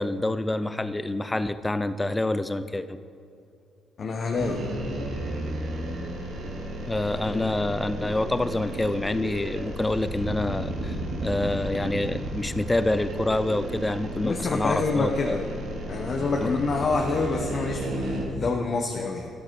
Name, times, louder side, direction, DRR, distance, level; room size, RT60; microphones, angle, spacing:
voice 1, 0.0-3.0 6.9-15.4 16.4-16.5, left 2 dB, 15° left, 13 dB, 0.5 m, -27 dB
voice 2, 4.0-4.6 14.2-15.5 15.9-19.3, left 4 dB, 50° left, 1 dB, 1.0 m, -27 dB
sound 1, 4.4-18.2, right 1 dB, 80° right, 2.3 m, -33 dB
12.5 x 10.5 x 4.6 m, 2.5 s
cardioid pair, 90°, 0 cm